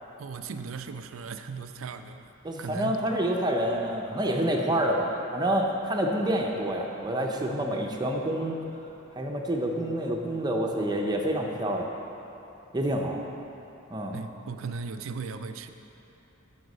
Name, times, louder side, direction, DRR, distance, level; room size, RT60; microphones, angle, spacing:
voice 1, 0.2-2.3 2.6-3.0 13.4-13.5 14.1-15.7, right 5 dB, 75° right, 8 dB, 0.5 m, -37 dB
voice 2, 2.4-8.6 9.2-11.9 12.7-13.2 13.9-14.2, right 1 dB, 20° right, 1 dB, 0.7 m, -28 dB
7.9 x 7.1 x 5.4 m, 3.0 s
head